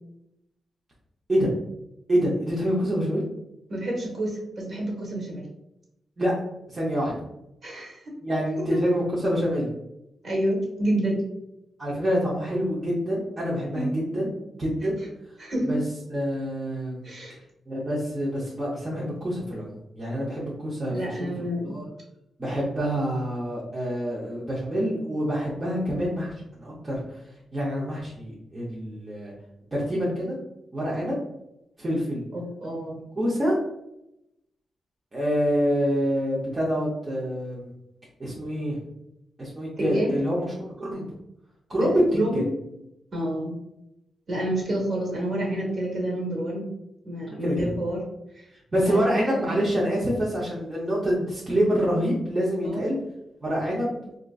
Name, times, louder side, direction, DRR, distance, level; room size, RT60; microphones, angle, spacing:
voice 1, 2.1-3.2 6.2-6.3 6.7-7.1 8.2-9.7 11.8-14.3 14.6-15.0 15.7-15.8 16.1-17.1 17.7-21.3 21.6-21.8 22.4-26.3 26.6-27.2 27.5-29.3 29.7-30.4 30.7-31.2 31.8-32.2 33.1-33.5 35.1-37.7 38.2-38.8 39.4-40.5 40.8-41.1 41.7-42.4 47.4-47.7 48.7-53.0 53.4-53.9, equal, 20° right, -6 dB, 0.7 m, -26 dB
voice 2, 3.7-5.5 7.6-8.0 8.6-8.8 10.2-11.2 13.7-13.9 15.4-15.8 17.0-17.4 20.9-21.8 32.3-33.0 39.8-40.1 41.8-42.5 43.1-43.5 44.3-46.6 47.0-48.0 48.3-48.5 48.8-49.5 52.6-52.8, right 1 dB, 45° right, -2 dB, 1.3 m, -28 dB
4.3 x 2.5 x 2.3 m, 0.85 s
wide cardioid pair, 160°, 0 cm